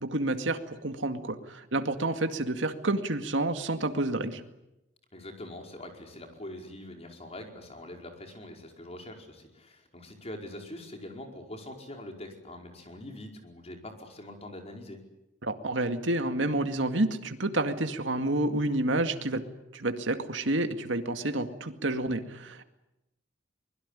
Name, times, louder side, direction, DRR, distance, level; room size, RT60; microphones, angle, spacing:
voice 1, 0.0-4.4 15.4-22.6, right 2 dB, 85° right, 7 dB, 2.2 m, -29 dB
voice 2, 5.1-15.0, left 1 dB, 35° left, 3 dB, 5.0 m, -43 dB
24.0 x 21.5 x 10.0 m, 0.94 s
head